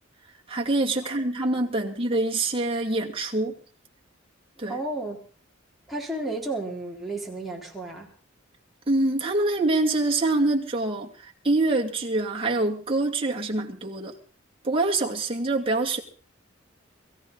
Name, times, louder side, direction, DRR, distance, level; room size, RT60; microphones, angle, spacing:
voice 1, 0.5-3.5 4.6-4.8 8.9-14.1 14.6-16.0, right 2 dB, 30° right, -1 dB, 2.5 m, -25 dB
voice 2, 4.7-5.2 5.9-8.1, right 2 dB, ahead, -3 dB, 3.9 m, -32 dB
23.5 x 15.0 x 4.0 m, 0.41 s
head